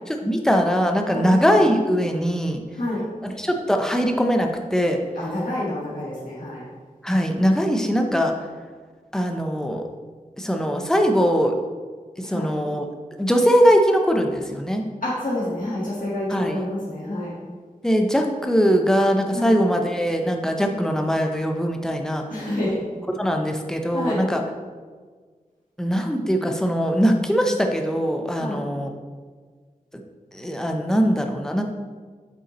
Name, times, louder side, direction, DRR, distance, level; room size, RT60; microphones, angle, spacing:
voice 1, 0.1-2.6 3.2-5.0 7.0-8.3 9.1-9.8 10.4-11.5 12.2-12.9 13.2-14.8 16.3-16.6 17.8-22.2 23.1-24.4 25.8-28.9 29.9-30.0 30.3-31.6, equal, 5° left, 3 dB, 0.7 m, -21 dB
voice 2, 2.8-3.1 5.1-6.6 7.1-7.2 12.2-12.5 15.0-17.3 19.3-19.5 22.3-22.8 23.9-24.2 28.4-28.7, left 1 dB, 70° left, -7 dB, 1.6 m, -28 dB
8.1 x 5.4 x 3.0 m, 1.5 s
wide cardioid pair, 75°, 14 cm